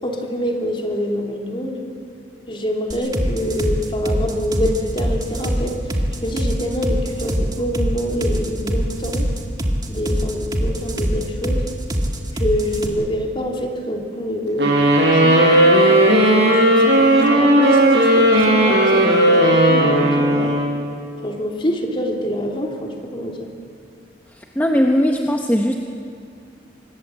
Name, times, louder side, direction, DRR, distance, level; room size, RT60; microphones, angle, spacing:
voice 1, 0.0-1.9 2.5-5.8 6.2-9.3 9.9-11.7 12.3-20.6 21.2-23.5, equal, 30° left, 1 dB, 3.0 m, -25 dB
sound 1, 2.9-12.9, equal, 20° right, 1.9 m, -23 dB
sound 2, 14.6-21.0, right 1 dB, 70° right, 6.3 m, -15 dB
voice 2, 24.5-25.8, equal, 10° left, 2 dB, 1.2 m, -18 dB
25.5 x 20.5 x 7.7 m, 2.5 s
head